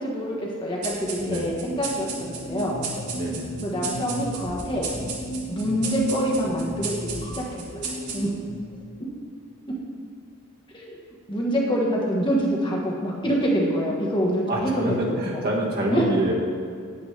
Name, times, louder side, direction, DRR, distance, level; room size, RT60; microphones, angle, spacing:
voice 1, 0.0-2.8 3.6-4.8 5.5-8.3 10.7-11.0 11.3-15.4 15.9-16.1, equal, 20° left, -3 dB, 1.3 m, -26 dB
sound 1, 0.8-8.6, right 5 dB, 90° right, 1.7 m, -36 dB
voice 2, 1.2-1.5 3.1-3.5 14.5-16.3, right 1 dB, 45° right, -3 dB, 1.6 m, -27 dB
sound 2, 1.7-8.8, equal, 45° left, 1.5 m, -35 dB
9.5 x 9.2 x 3.3 m, 2.2 s
head